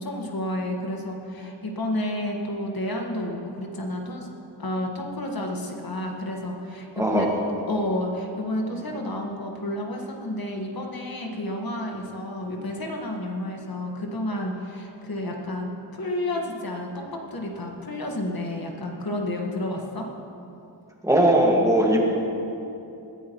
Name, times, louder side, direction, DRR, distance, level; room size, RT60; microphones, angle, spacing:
voice 1, 0.0-4.3 4.6-7.3 7.7-20.1, left 1 dB, 50° left, 0 dB, 1.8 m, -31 dB
voice 2, 7.0-7.3 21.0-22.0, right 1 dB, 5° right, -2 dB, 1.9 m, -19 dB
21.0 x 14.0 x 3.2 m, 2.9 s
wide cardioid pair, 135°, 44 cm